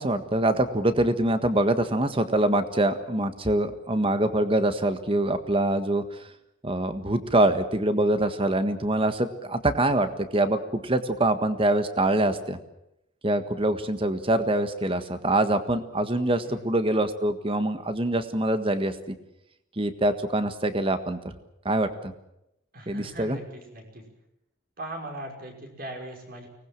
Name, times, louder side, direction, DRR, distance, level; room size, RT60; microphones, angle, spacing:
voice 1, 0.0-6.0 6.6-12.6 13.2-19.1 19.8-21.3 21.6-22.1 22.9-23.4, right 1 dB, 30° right, 9 dB, 1.6 m, -24 dB
voice 2, 22.7-24.0 24.8-26.5, right 1 dB, 50° right, 2 dB, 5.6 m, -39 dB
24.5 x 19.5 x 7.6 m, 0.83 s
head